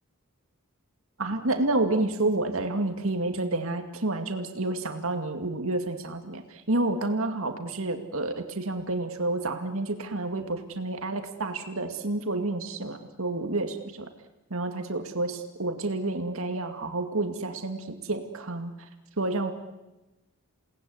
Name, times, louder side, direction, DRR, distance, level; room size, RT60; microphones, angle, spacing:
voice 1, 1.2-14.1 14.5-18.9 19.2-19.5, right 2 dB, 75° right, 6 dB, 2.2 m, -29 dB
29.0 x 19.5 x 9.6 m, 1.0 s
head